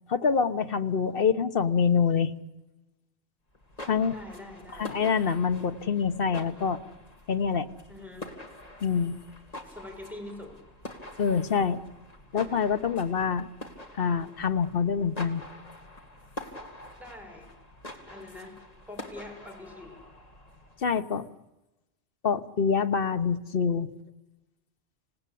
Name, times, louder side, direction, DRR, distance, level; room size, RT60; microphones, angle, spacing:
voice 1, 0.1-2.3 3.9-4.1 4.8-6.8 7.3-7.7 8.8-9.2 11.2-11.8 12.3-13.5 13.9-15.4 20.8-21.3 22.2-23.9, left 6 dB, 60° left, 10 dB, 1.4 m, -26 dB
sound 1, 3.5-20.9, left 1 dB, 35° left, 2.7 m, -45 dB
voice 2, 4.1-4.9 7.9-8.3 9.7-10.6 17.0-17.5 18.1-18.6 18.9-20.0, left 2 dB, ahead, 1 dB, 6.7 m, -44 dB
27.0 x 18.5 x 8.6 m, 0.97 s
omnidirectional pair, 1.1 m